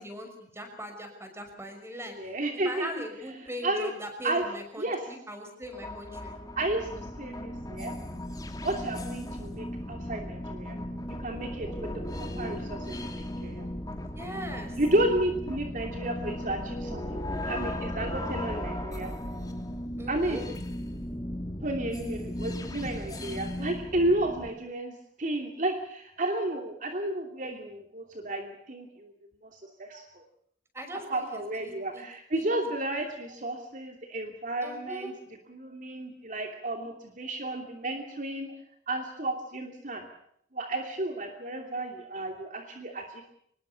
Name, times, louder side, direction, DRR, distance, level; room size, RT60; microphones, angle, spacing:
voice 1, 0.0-2.1 2.6-6.3 14.1-14.8 20.0-20.4 30.7-32.0 32.4-32.5 34.6-35.1, equal, 15° right, 6 dB, 5.9 m, -40 dB
voice 2, 2.2-2.9 3.6-3.9 4.2-4.4 4.8-5.0 6.6-6.9 7.2-7.9 8.6-10.8 11.2-11.9 12.2-13.7 14.8-19.1 20.1-20.4 21.6-29.1 29.5-30.2 31.1-35.1 35.5-38.5 38.9-40.1 40.5-43.2, right 1 dB, 45° right, 4 dB, 2.8 m, -32 dB
sound 1, 5.6-24.5, left 1 dB, 20° left, 2.6 m, -36 dB
24.5 x 21.0 x 7.0 m, 0.68 s
head